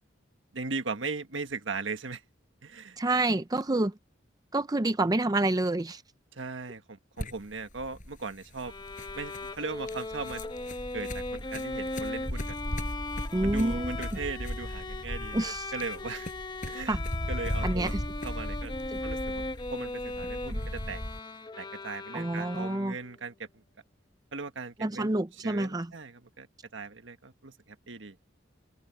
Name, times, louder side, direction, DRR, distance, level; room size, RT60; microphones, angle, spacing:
voice 1, 0.5-2.2 2.6-3.0 6.3-8.7 9.1-10.4 10.9-12.6 13.4-16.3 16.6-17.0 17.3-17.9 18.2-18.7 19.0-19.4 19.7-21.0 21.6-23.6 24.3-25.1 25.4-26.5 26.7-28.2, right 4 dB, 80° right, 1.5 m, -38 dB
voice 2, 3.0-3.9 4.5-6.0 13.3-14.0 15.3-15.7 16.9-17.0 17.6-18.0 18.9-19.0 20.5-20.6 22.1-23.0 24.8-25.9, right 2 dB, 20° right, 0.6 m, -28 dB
sound 1, 7.2-21.2, equal, 45° left, 6.0 m, -37 dB
Bowed string instrument, 8.6-23.2, left 2 dB, 25° left, 1.0 m, -38 dB
head